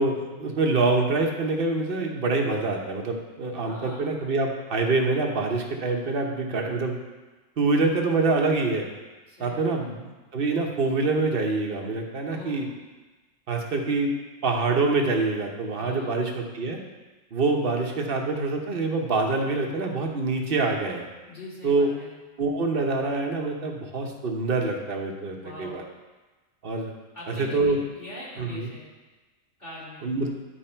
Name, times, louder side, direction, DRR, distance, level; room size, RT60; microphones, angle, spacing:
voice 1, 0.0-7.0 7.6-8.9 9.4-12.7 13.5-14.1 14.4-16.8 17.3-21.0 21.6-21.9 22.4-25.8 26.6-26.9 27.3-27.8 28.4-28.7 30.0-30.3, right 3 dB, 50° right, 2 dB, 1.1 m, -25 dB
voice 2, 3.6-4.1 9.3-9.9 12.3-12.6 15.8-16.1 21.3-22.1 25.3-25.8 27.1-27.7 28.0-28.9 29.6-30.0, left 1 dB, 35° left, -8 dB, 2.6 m, -42 dB
10.5 x 4.7 x 4.4 m, 1.2 s
omnidirectional pair, 1.3 m